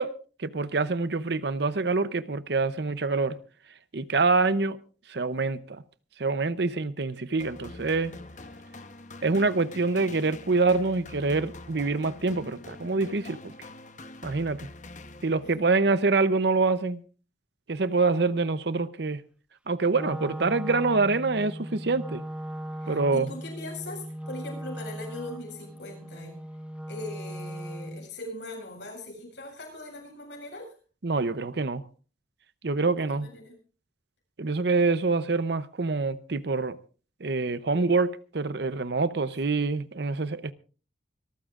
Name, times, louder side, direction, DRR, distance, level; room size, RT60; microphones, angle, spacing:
voice 1, 0.0-3.4 3.9-4.8 5.1-5.8 6.2-8.1 9.2-13.5 14.2-14.7 15.2-17.0 17.7-19.2 19.7-22.2 22.9-23.3 31.0-31.8 32.6-33.3 34.4-36.8 37.2-40.5, right 3 dB, 60° right, 0.7 m, -26 dB
sound 1, 7.4-15.7, left 2 dB, 40° left, 1.0 m, -45 dB
Wind instrument woodwind instrument, 19.9-28.1, equal, 5° right, 0.8 m, -38 dB
voice 2, 22.8-26.3 26.9-30.7 32.8-33.5, left 2 dB, 65° left, 7.9 m, -40 dB
26.0 x 14.0 x 2.5 m
head